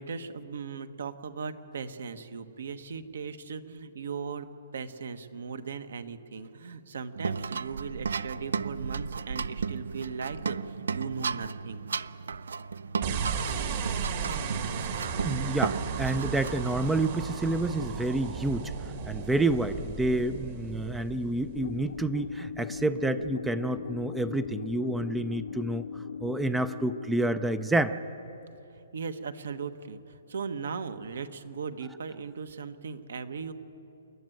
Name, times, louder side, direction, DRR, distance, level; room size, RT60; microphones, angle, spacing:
voice 1, 0.0-11.8 28.9-33.5, right 5 dB, 65° right, 10 dB, 1.2 m, -38 dB
sound 1, 7.2-17.4, right 5 dB, 90° right, 0.4 m, -34 dB
sound 2, 13.0-22.4, right 6 dB, 35° right, 1.3 m, -35 dB
voice 2, 15.2-18.7 19.1-25.8 26.2-28.0, right 2 dB, 5° right, 12 dB, 0.4 m, -29 dB
sound 3, 21.5-28.1, left 6 dB, 90° left, 0.6 m, -39 dB
29.5 x 11.0 x 9.2 m, 2.9 s
hypercardioid pair, 175°, 0 cm